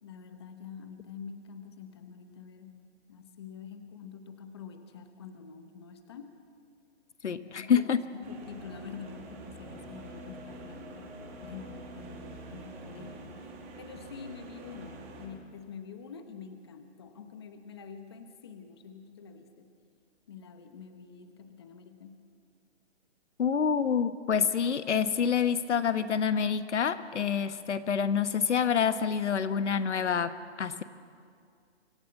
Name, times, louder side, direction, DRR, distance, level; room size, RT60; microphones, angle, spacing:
voice 1, 0.0-2.8 3.1-6.4 7.5-11.1 11.4-13.5 13.8-19.7 20.3-22.3, left 6 dB, 25° left, 7 dB, 0.9 m, -47 dB
voice 2, 7.2-8.0 23.4-30.8, left 7 dB, 85° left, 11 dB, 1.3 m, -27 dB
sound 1, 7.4-14.3, left 1 dB, 5° left, 1.5 m, -55 dB
sound 2, 8.2-15.3, right 2 dB, 10° right, 1.1 m, -46 dB
25.0 x 14.0 x 8.4 m, 2.2 s
hypercardioid pair, 180°, 34 cm